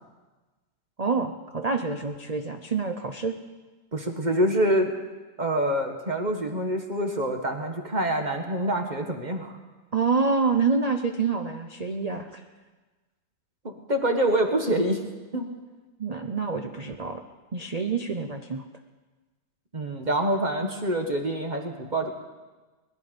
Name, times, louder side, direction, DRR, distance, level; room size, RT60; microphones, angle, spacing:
voice 1, 1.0-3.4 9.9-12.4 16.0-17.2 17.5-18.7, right 4 dB, 55° right, 5 dB, 0.4 m, -27 dB
voice 2, 3.9-4.9 5.4-9.6 13.9-15.0 15.3-15.5 19.7-22.1, right 1 dB, 30° right, 4 dB, 1.3 m, -26 dB
21.0 x 11.5 x 5.3 m, 1.3 s
omnidirectional pair, 1.9 m